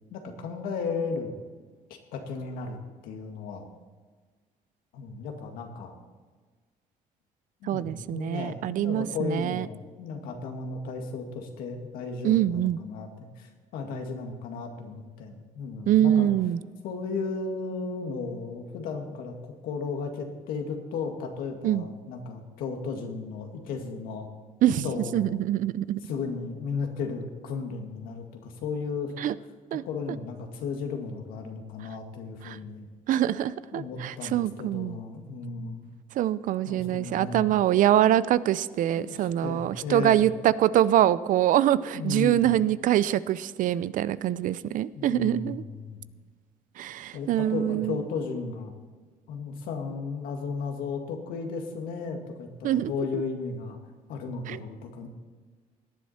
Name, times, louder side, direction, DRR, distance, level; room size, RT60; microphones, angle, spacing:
voice 1, 0.1-1.4 2.1-2.8 3.0-3.7 4.9-5.9 7.6-16.3 16.8-19.3 19.6-24.3 24.8-25.4 26.0-29.1 29.7-32.9 33.7-35.9 36.7-37.5 39.0-39.2 39.4-40.2 41.9-42.5 45.0-46.0 47.1-48.7 49.3-53.8 54.1-55.1, left 4 dB, 85° left, 3 dB, 2.1 m, -35 dB
voice 2, 7.6-9.7 12.2-12.8 15.9-16.6 21.6-21.8 24.6-26.0 29.2-29.3 29.7-29.8 32.4-32.6 33.1-35.0 36.2-45.6 46.8-48.0 52.6-53.2 54.5-54.6, right 12 dB, 65° right, 17 dB, 0.5 m, -24 dB
18.0 x 10.5 x 4.3 m, 1.4 s
cardioid pair, 100°, 15 cm